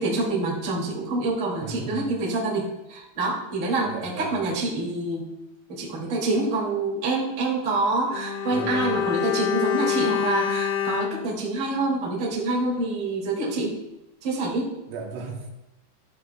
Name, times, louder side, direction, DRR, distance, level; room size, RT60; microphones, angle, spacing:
voice 1, 0.0-5.3 5.7-13.8 14.2-14.7, right 2 dB, 30° right, -3 dB, 2.8 m, -26 dB
voice 2, 1.6-2.1 3.8-4.4 8.5-9.0 14.9-15.5, right 4 dB, 80° right, -2 dB, 4.4 m, -36 dB
Bowed string instrument, 8.1-12.5 12.8-12.9, left 9 dB, 85° left, 2.1 m, -28 dB
17.0 x 14.0 x 2.4 m, 0.96 s
omnidirectional pair, 5.6 m